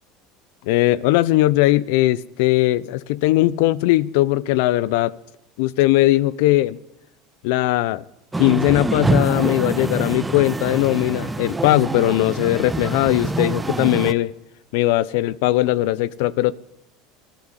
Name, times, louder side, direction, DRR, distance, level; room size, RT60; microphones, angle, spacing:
voice 1, 0.7-5.2 5.6-6.8 7.4-8.0 8.4-14.3 14.7-16.5, left 16 dB, 75° left, 0.7 m, -19 dB
sound 1, 8.3-14.1, right 2 dB, 10° right, 1.2 m, -25 dB
24.0 x 13.5 x 9.1 m
supercardioid pair, 100°, 0 cm